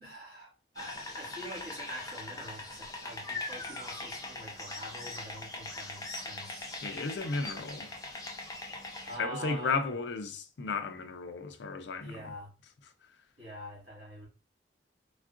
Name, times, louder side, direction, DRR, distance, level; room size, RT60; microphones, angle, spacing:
voice 1, 0.0-0.5 0.8-6.7 9.0-9.9 12.0-12.5 13.4-14.3, right 1 dB, 55° right, 1.6 m, -45 dB
sound 1, 0.8-9.2, left 2 dB, 20° left, 0.5 m, -41 dB
voice 2, 6.8-7.9 9.2-12.3, left 4 dB, 80° left, 0.4 m, -34 dB
3.5 x 2.4 x 2.4 m
head